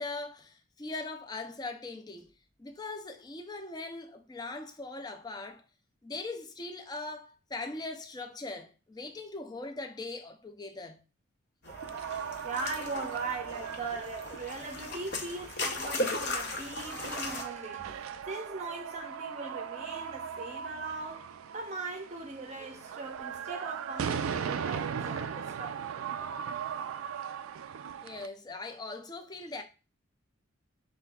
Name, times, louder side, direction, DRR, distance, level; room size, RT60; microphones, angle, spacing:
voice 1, 0.0-5.6 6.0-11.0 28.0-29.6, left 3 dB, 20° left, 0.4 m, -40 dB
sound 1, 11.6-17.4, left 2 dB, 50° left, 0.8 m, -37 dB
sound 2, 11.7-28.3, right 7 dB, 80° right, 0.4 m, -39 dB
voice 2, 12.4-21.3 21.5-26.0, right 3 dB, 35° right, 0.6 m, -40 dB
6.1 x 3.3 x 2.3 m
head